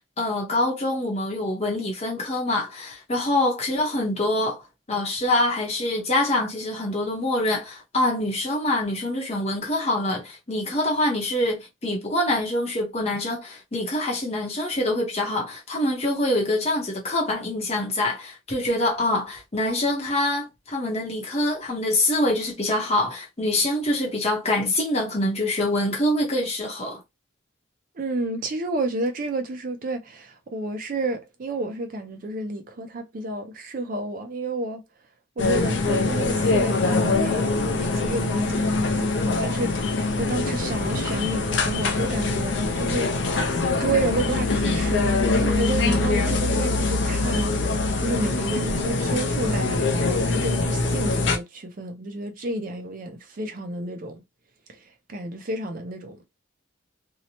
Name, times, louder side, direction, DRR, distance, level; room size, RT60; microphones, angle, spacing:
voice 1, 0.2-4.6 4.9-27.0, left 1 dB, 30° left, 0.7 m, -25 dB
voice 2, 28.0-34.8 35.4-43.1 43.4-54.2 54.7-54.8 55.1-56.2, right 2 dB, 40° right, 0.4 m, -30 dB
sound 1, 35.4-51.4, left 3 dB, 60° left, 0.4 m, -23 dB
2.7 x 2.1 x 2.8 m
head